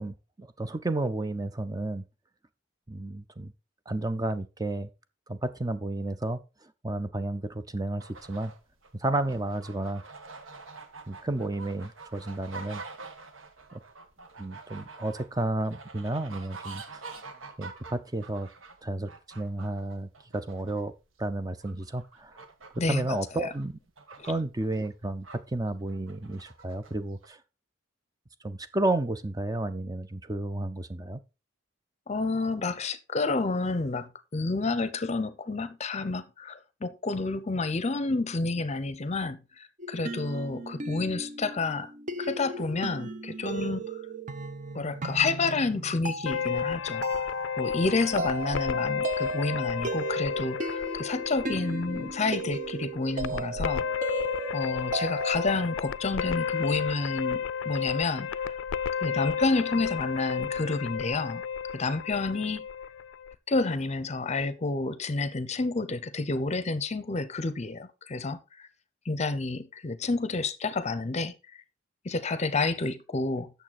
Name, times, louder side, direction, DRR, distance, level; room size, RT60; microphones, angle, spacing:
voice 1, 0.0-2.0 2.9-3.5 3.9-4.9 5.3-8.5 8.9-10.0 11.1-12.8 13.7-13.8 14.4-17.0 17.6-18.5 18.8-19.1 19.4-20.9 21.2-22.4 22.9-23.8 24.3-27.4 28.4-31.2, right 2 dB, 20° right, 0.5 m, -32 dB
sound 1, 8.0-25.4 25.8-27.0 27.2-27.3, right 4 dB, 85° right, 1.5 m, -47 dB
voice 2, 32.1-41.9 42.2-44.0 44.7-47.1 47.6-54.1 54.5-58.6 59.0-61.4 61.7-62.7 63.5-68.7 69.1-71.3 72.0-73.5, left 3 dB, 35° left, 0.7 m, -30 dB
sound 2, 39.8-55.7, right 3 dB, 40° right, 0.9 m, -36 dB
sound 3, 46.3-63.3, left 7 dB, 70° left, 0.4 m, -32 dB
8.9 x 6.8 x 4.1 m
head